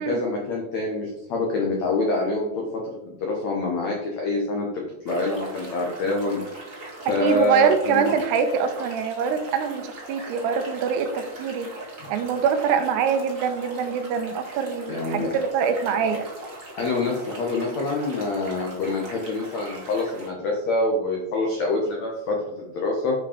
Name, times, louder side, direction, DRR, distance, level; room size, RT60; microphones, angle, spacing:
voice 1, 0.0-2.6 3.3-4.7 5.0-6.4 6.7-8.1 12.0-12.1 14.9-15.3 16.8-23.1, left 2 dB, 75° left, -1 dB, 1.6 m, -26 dB
sound 1, 5.1-20.3, right 2 dB, 40° right, 1.1 m, -40 dB
voice 2, 7.2-11.7 12.1-16.2, right 6 dB, 80° right, 8 dB, 2.8 m, -24 dB
8.2 x 5.4 x 5.0 m, 0.93 s
omnidirectional pair, 5.0 m